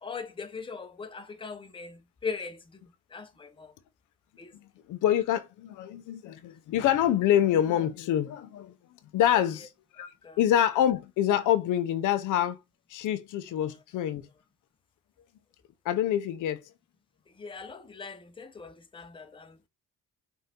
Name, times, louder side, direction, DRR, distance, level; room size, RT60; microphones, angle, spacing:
voice 1, 0.0-2.6 3.1-3.7 4.4-4.5 10.2-10.4 17.4-19.6, left 5 dB, 15° left, 0.6 m, -40 dB
voice 2, 4.9-8.7 9.1-10.1 10.4-12.6 12.9-14.3 15.9-16.6, left 11 dB, 85° left, 0.6 m, -26 dB
5.1 x 2.6 x 2.8 m
cardioid pair, 90°, 30 cm